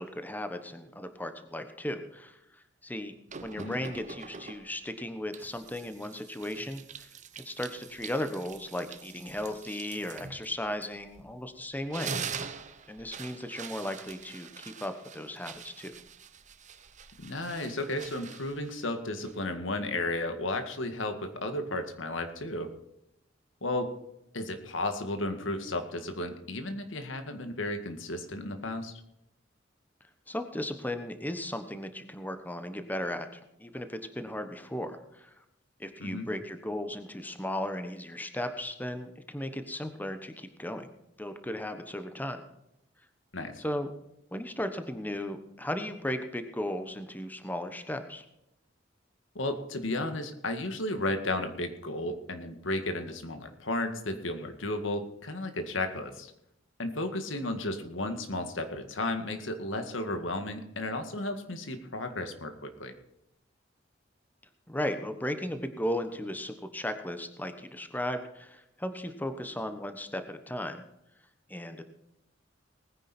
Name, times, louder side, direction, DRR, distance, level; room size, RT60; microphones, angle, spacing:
voice 1, 0.0-2.4 2.8-3.1 3.4-7.1 7.4-12.2 12.9-15.9 30.3-35.3 35.8-40.9 41.2-42.4 43.6-43.9 44.3-48.2 64.7-70.8 71.5-71.8, left 1 dB, 10° left, 8 dB, 1.2 m, -36 dB
sound 1, 3.3-4.8 5.3-11.4 11.7-19.6, right 6 dB, 40° right, 0.9 m, -44 dB
voice 2, 17.2-22.7 23.6-23.9 24.3-28.9 36.0-36.3 43.3-43.6 49.4-56.3 56.8-62.9, left 2 dB, 90° left, 7 dB, 2.0 m, -33 dB
19.5 x 10.0 x 4.4 m, 0.84 s
head